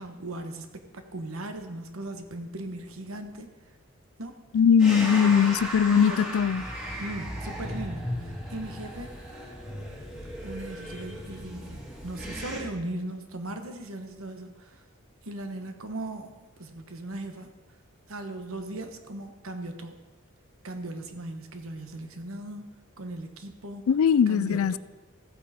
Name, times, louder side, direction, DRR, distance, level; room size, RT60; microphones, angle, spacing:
voice 1, 0.0-3.5 4.2-4.4 5.0-5.5 5.9-6.4 7.0-9.2 10.4-14.8 15.2-16.3 16.6-17.5 18.1-20.0 20.6-22.7 23.0-23.8 24.3-24.8, right 1 dB, 75° right, 7 dB, 1.2 m, -38 dB
voice 2, 4.5-6.6 23.9-24.8, left 7 dB, 80° left, 18 dB, 0.4 m, -20 dB
sound 1, 4.8-12.6, equal, 5° right, 2.5 m, -36 dB
14.5 x 8.5 x 4.3 m, 1.2 s
head